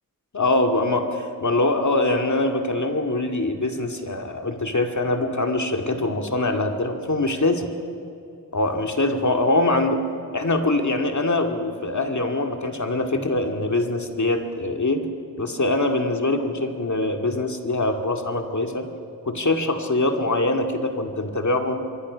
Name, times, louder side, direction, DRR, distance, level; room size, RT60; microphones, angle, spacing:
voice 1, 0.3-7.7 8.5-10.0 10.3-15.1 15.4-18.9 19.3-21.8, left 2 dB, 55° left, 4 dB, 2.2 m, -23 dB
26.5 x 22.5 x 6.3 m, 2.6 s
wide cardioid pair, 50°, 36 cm